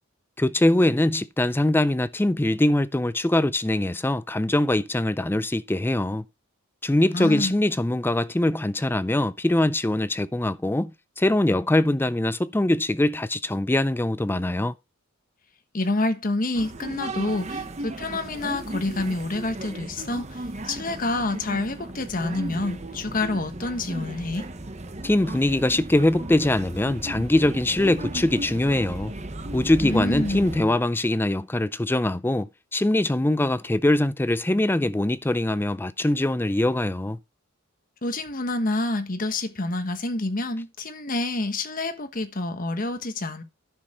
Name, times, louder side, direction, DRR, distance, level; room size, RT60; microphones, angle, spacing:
voice 1, 0.4-6.3 6.8-10.9 11.2-14.7 25.0-29.1 29.5-32.5 32.7-37.2, left 1 dB, 10° left, 0.4 m, -22 dB
voice 2, 7.1-7.6 15.7-24.5 29.8-30.5 38.0-43.4, left 2 dB, 40° left, 1.3 m, -28 dB
sound 1, 16.5-30.7, right 1 dB, 35° right, 1.0 m, -36 dB
10.5 x 6.5 x 4.3 m
head